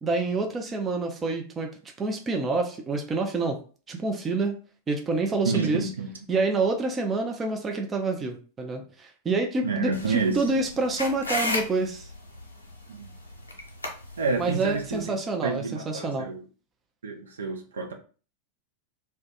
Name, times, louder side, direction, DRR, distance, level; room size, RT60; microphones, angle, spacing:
voice 1, 0.0-3.6 3.9-4.6 4.9-5.9 6.3-12.1 14.4-16.3, right 3 dB, 20° right, 3 dB, 0.4 m, -27 dB
voice 2, 5.4-6.1 9.6-10.4 12.9-13.1 14.2-15.2 15.4-16.4 17.0-17.9, right 4 dB, 70° right, 3 dB, 0.5 m, -29 dB
sound 1, 9.9-15.0, left 2 dB, 80° left, 0.6 m, -35 dB
2.2 x 2.2 x 2.8 m, 0.38 s
figure-of-eight pair, 90°, 0 cm